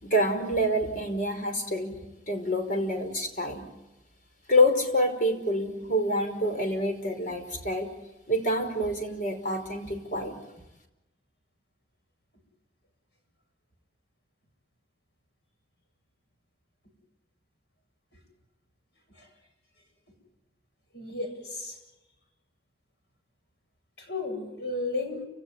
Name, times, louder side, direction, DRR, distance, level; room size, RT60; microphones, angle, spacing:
voice 1, 0.0-2.0 2.3-3.7 4.5-7.9 8.3-10.3, equal, 45° left, 5 dB, 5.1 m, -27 dB
voice 2, 20.9-21.8 24.0-25.2, left 2 dB, 65° left, 4 dB, 7.8 m, -33 dB
29.5 x 17.5 x 9.7 m, 1.0 s
head